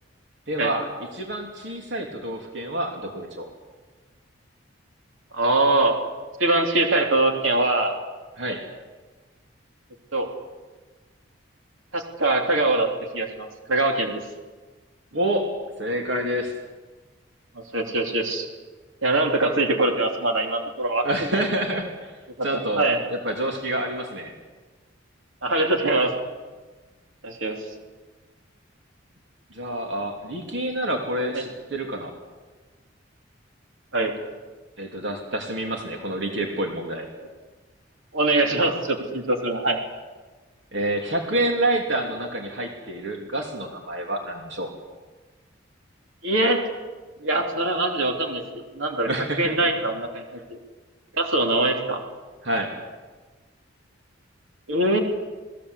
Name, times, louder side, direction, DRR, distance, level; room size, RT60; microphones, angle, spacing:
voice 1, 0.5-0.9 1.1-3.5 8.4-8.6 15.1-15.5 15.8-16.5 21.0-22.9 23.2-24.3 29.5-32.1 34.8-37.1 40.7-44.7 49.1-49.7 52.4-52.7, right 1 dB, 60° right, 2 dB, 3.1 m, -28 dB
voice 2, 5.3-6.0 6.4-7.9 10.1-10.3 11.9-12.9 13.1-14.2 17.7-18.5 19.0-21.1 22.5-23.0 25.4-26.1 27.2-27.6 31.3-31.5 33.9-34.1 38.1-39.8 46.2-46.6 47.2-49.1 49.4-50.6 51.1-52.0 54.7-55.0, right 2 dB, 80° right, 3 dB, 3.1 m, -23 dB
28.5 x 20.0 x 8.2 m, 1.3 s
head